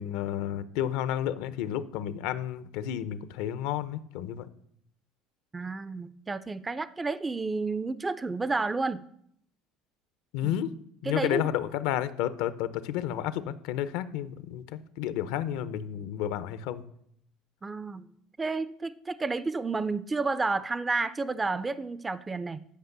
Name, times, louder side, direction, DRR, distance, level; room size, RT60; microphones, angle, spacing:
voice 1, 0.0-4.5 10.3-10.7 11.0-16.8, left 11 dB, 75° left, 13 dB, 0.6 m, -31 dB
voice 2, 5.5-9.0 10.4-10.6 11.0-11.4 17.6-18.0 18.4-22.6, right 3 dB, 15° right, 15 dB, 0.4 m, -31 dB
10.5 x 5.2 x 6.7 m, 0.71 s
cardioid pair, 125°, 0 cm